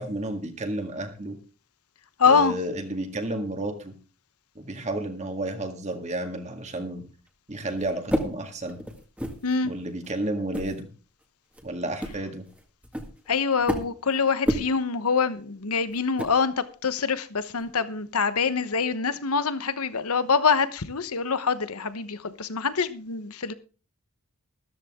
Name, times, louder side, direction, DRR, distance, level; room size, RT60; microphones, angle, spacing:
voice 1, 0.0-1.4 2.3-3.9 4.6-7.0 7.5-8.8 9.6-10.9 11.6-12.4, right 1 dB, 30° right, 2.0 m, -31 dB
voice 2, 2.2-2.5 9.4-9.7 13.3-16.5 16.8-23.5, left 5 dB, 85° left, 1.0 m, -25 dB
sound 1, 7.3-7.4 7.8-9.6 10.0-10.1 10.5-10.8 11.2-11.3 11.5-11.7 12.0-14.2 14.4-14.7 15.9-16.4 17.6-17.7, equal, 5° right, 1.8 m, -30 dB
13.5 x 13.5 x 3.7 m
head